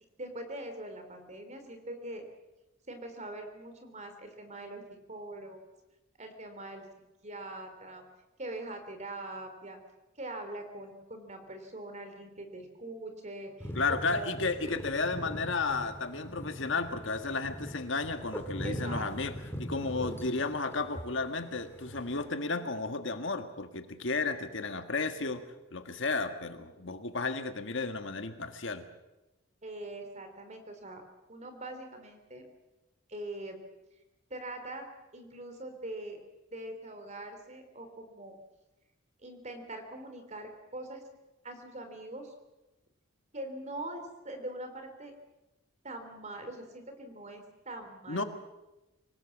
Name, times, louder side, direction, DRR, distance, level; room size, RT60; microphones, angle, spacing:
voice 1, 0.2-2.2 2.9-5.6 6.2-6.9 7.2-8.0 8.4-9.8 10.2-14.4 18.6-19.1 29.6-31.0 31.3-32.4 33.1-33.6 34.3-34.9 35.1-36.2 36.5-38.3 39.2-41.0 41.4-42.3 43.3-45.1 45.8-48.3, right 1 dB, 35° right, 7 dB, 3.6 m, -42 dB
sound 1, 13.6-22.3, equal, 10° left, 2.5 m, -41 dB
voice 2, 13.8-19.3 19.6-25.4 25.7-28.9 48.1-48.2, left 3 dB, 65° left, 8 dB, 1.7 m, -33 dB
25.0 x 18.5 x 7.4 m, 1.0 s
head